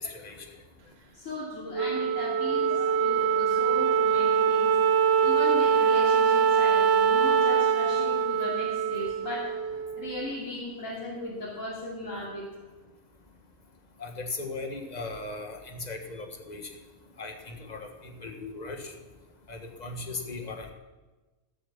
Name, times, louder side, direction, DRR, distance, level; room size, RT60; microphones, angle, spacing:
voice 1, 0.0-0.4 2.7-3.0 14.0-16.6 17.2-17.8 18.2-18.8 19.5-20.7, left 3 dB, 35° left, 3 dB, 1.6 m, -37 dB
voice 2, 1.1-4.8 5.2-9.7 10.0-12.5 16.1-16.2 17.6-17.8, left 1 dB, 90° left, -6 dB, 3.2 m, -37 dB
Wind instrument woodwind instrument, 1.7-10.3, right 6 dB, 60° right, 0.9 m, -24 dB
17.0 x 7.6 x 7.4 m, 1.2 s
omnidirectional pair, 1.3 m